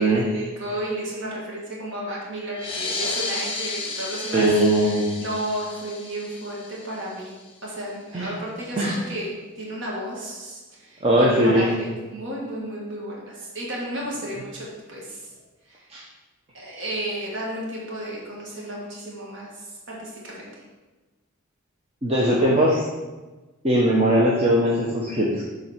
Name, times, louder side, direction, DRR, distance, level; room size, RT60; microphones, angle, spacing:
voice 1, 0.0-7.4 7.6-9.3 9.5-15.3 15.6-15.9 16.5-20.6, right 1 dB, 60° right, -4 dB, 1.7 m, -33 dB
sound 1, 2.5-7.6, left 3 dB, 25° left, 1.3 m, -33 dB
voice 2, 4.3-5.1 8.1-8.3 8.8-8.9 11.0-11.7 15.9-16.0 22.0-22.8 23.6-25.4, right 1 dB, 30° right, -4 dB, 0.9 m, -20 dB
7.6 x 3.9 x 5.7 m, 1.2 s
head